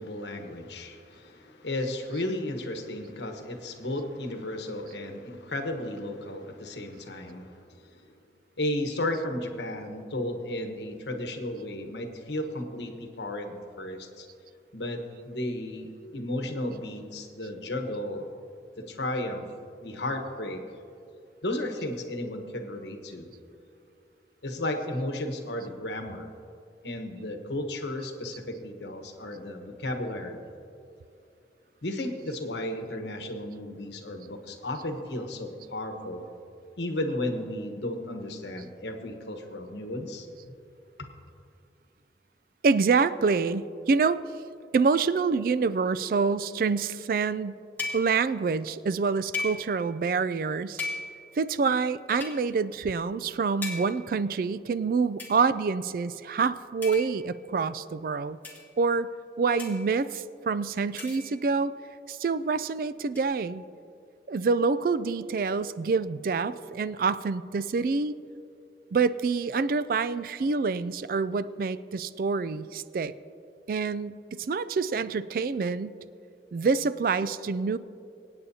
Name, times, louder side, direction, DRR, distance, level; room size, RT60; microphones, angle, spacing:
voice 1, 0.0-8.0 8.6-14.3 14.7-15.0 15.2-18.3 18.8-19.4 19.8-20.6 21.4-23.3 24.4-26.3 26.8-30.4 31.8-36.3 36.8-40.5 41.0-41.1, left 1 dB, 80° left, 5 dB, 1.2 m, -34 dB
voice 2, 42.6-44.2 44.7-47.6 47.9-50.8 51.4-58.4 58.8-59.1 59.4-61.7 62.1-63.6 64.3-68.2 68.9-73.1 73.7-76.0 76.5-77.8, right 4 dB, 50° right, 15 dB, 0.3 m, -26 dB
sound 1, 47.8-48.3 49.3-49.9 50.8-51.4 52.2-52.4 53.6-54.1 55.2-55.4 56.8-57.4 58.4-58.7 59.6-60.0 61.0-61.5 63.1-63.2, left 3 dB, 10° left, 1.8 m, -37 dB
24.5 x 8.8 x 2.8 m, 2.6 s
head